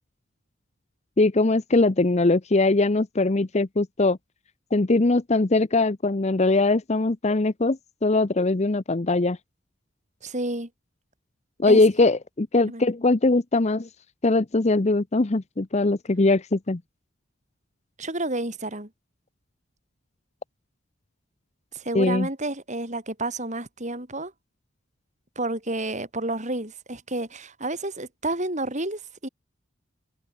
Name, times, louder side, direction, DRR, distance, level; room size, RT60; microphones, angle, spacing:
voice 1, 1.2-4.2 4.7-9.4 11.6-13.9 14.2-16.8 21.9-22.3, left 2 dB, 35° left, 0.7 m, -21 dB
voice 2, 10.2-10.7 11.7-11.8 12.7-12.9 18.0-18.9 21.7-24.3 25.4-29.3, right 2 dB, 35° right, 7.9 m, -30 dB
head